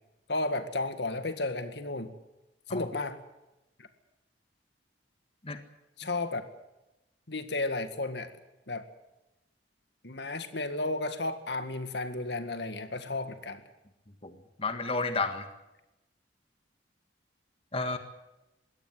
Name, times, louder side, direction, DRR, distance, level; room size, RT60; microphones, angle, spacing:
voice 1, 0.3-2.1 2.7-3.2 6.0-6.4 7.3-8.3 8.7-8.9 10.0-13.6, left 2 dB, 70° left, 9 dB, 2.0 m, -33 dB
voice 2, 14.2-15.5 17.7-18.0, left 3 dB, 35° left, 8 dB, 1.7 m, -32 dB
22.5 x 17.0 x 7.7 m, 0.96 s
head